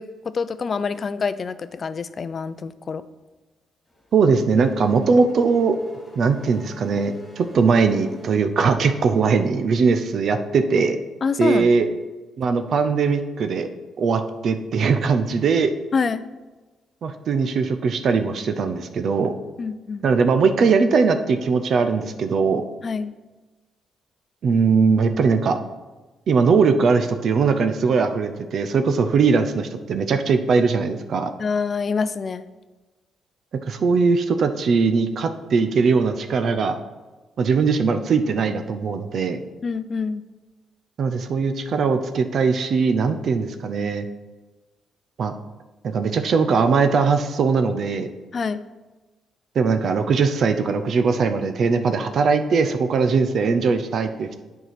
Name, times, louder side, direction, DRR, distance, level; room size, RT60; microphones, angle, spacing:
voice 1, 0.0-3.0 11.2-11.7 15.9-16.2 19.6-20.0 22.8-23.1 31.4-32.4 39.6-40.2 48.3-48.6, left 5 dB, 40° left, 13 dB, 0.4 m, -26 dB
Race car auto racing / Accelerating revving vroom, 3.9-9.1, equal, 10° left, 2.7 m, -43 dB
voice 2, 4.1-5.8 6.2-11.0 11.4-11.9 12.4-13.7 14.0-15.7 17.0-19.3 20.0-22.6 24.4-25.6 26.3-31.3 33.7-36.8 37.4-39.4 41.0-44.0 45.2-45.3 45.8-48.1 49.5-54.4, right 5 dB, 60° right, 8 dB, 0.6 m, -20 dB
8.1 x 4.7 x 5.9 m, 1.2 s
cardioid pair, 90°, 0 cm